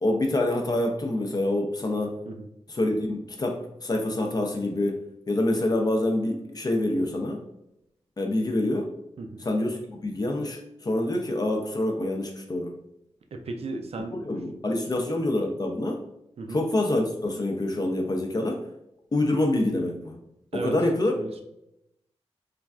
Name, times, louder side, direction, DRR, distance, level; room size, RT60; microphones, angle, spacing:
voice 1, 0.0-2.2 2.7-7.4 8.2-8.9 9.4-12.7 14.3-16.0 16.5-18.6 19.1-20.2 20.6-21.1, left 1 dB, 35° left, 2 dB, 0.4 m, -26 dB
voice 2, 13.3-14.2 16.4-16.6 20.5-20.8 21.2-21.4, right 3 dB, 65° right, 4 dB, 0.4 m, -35 dB
3.1 x 2.4 x 2.3 m, 0.81 s
wide cardioid pair, 90°, 11 cm